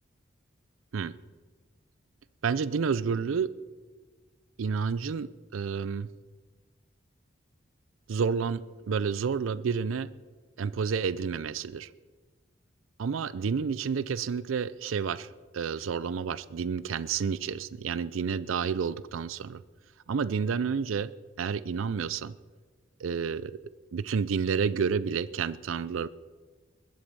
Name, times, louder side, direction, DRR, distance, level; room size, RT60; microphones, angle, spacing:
voice 1, 2.4-3.5 4.6-6.1 8.1-10.1 10.6-11.9 13.0-15.3 15.5-19.6 20.1-21.1 21.4-22.3 23.0-23.6 23.9-26.1, right 6 dB, 90° right, 17 dB, 0.4 m, -30 dB
21.0 x 7.6 x 5.3 m, 1.4 s
head